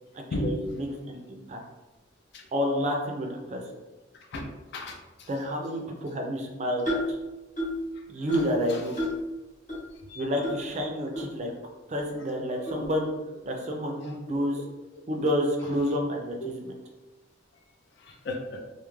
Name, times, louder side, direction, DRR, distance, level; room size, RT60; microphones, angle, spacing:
voice 1, 0.1-1.6 2.5-3.6 5.3-7.0 8.1-8.9 10.2-11.5 11.9-13.1 13.4-14.6 15.1-16.7, equal, 35° right, 1 dB, 0.4 m, -29 dB
voice 2, 4.7-5.3 8.7-8.8 10.1-10.2 12.5-12.9 16.4-16.6 18.0-18.6, left 1 dB, 60° left, 3 dB, 0.4 m, -34 dB
sound 1, 6.9-7.2 7.6-7.9 8.3-8.6 9.0-9.2 9.7-9.8 10.4-10.6 11.1-11.2 11.9-12.0 12.7-12.8, equal, 40° left, 0.9 m, -30 dB
2.3 x 2.0 x 3.0 m, 1.1 s
head